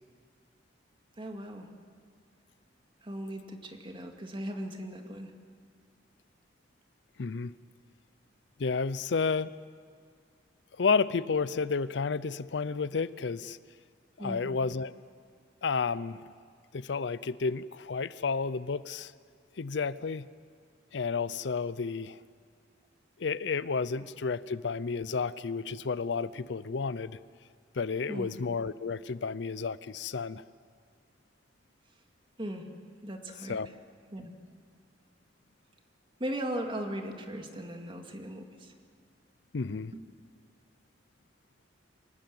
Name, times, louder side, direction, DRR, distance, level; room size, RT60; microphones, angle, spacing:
voice 1, 1.2-1.7 3.0-5.3 14.2-14.6 28.1-28.4 32.4-32.7 33.0-33.6 34.1-34.3 36.2-38.7 39.9-40.0, right 1 dB, 30° right, 4 dB, 2.2 m, -38 dB
voice 2, 7.2-7.5 8.6-9.5 10.8-13.6 14.2-14.9 15.6-16.2 16.7-19.1 19.6-20.3 20.9-22.2 23.2-27.2 27.8-30.4 33.5-33.7 39.5-39.9, left 5 dB, 75° left, 17 dB, 0.5 m, -31 dB
25.5 x 19.0 x 7.8 m, 2.2 s
head